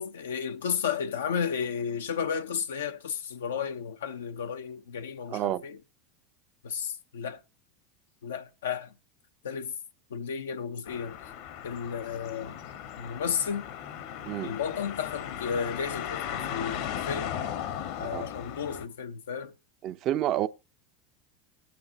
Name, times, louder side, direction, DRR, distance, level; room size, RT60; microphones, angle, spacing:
voice 1, 0.0-5.8 6.6-7.4 8.2-8.9 9.4-9.7 10.1-11.2 11.6-12.6 13.0-13.7 14.4-17.3 18.0-19.5, left 7 dB, 85° left, 0.7 m, -33 dB
voice 2, 5.3-5.6 14.3-14.5 18.0-18.3 19.8-20.5, right 12 dB, 50° right, 0.6 m, -29 dB
sound 1, 10.9-18.9, left 9 dB, 65° left, 1.2 m, -37 dB
19.0 x 8.6 x 2.8 m
hypercardioid pair, 95°, 0 cm